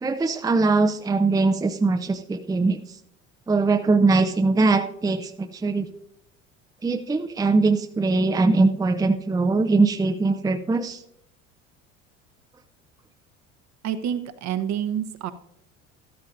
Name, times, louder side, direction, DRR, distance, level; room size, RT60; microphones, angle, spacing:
voice 1, 0.0-2.8 3.5-5.9 6.8-11.0, right 3 dB, 10° right, 7 dB, 0.6 m, -21 dB
voice 2, 13.8-15.3, right 9 dB, 45° right, 10 dB, 1.0 m, -28 dB
13.5 x 13.0 x 2.6 m, 0.76 s
hypercardioid pair, 70°, 39 cm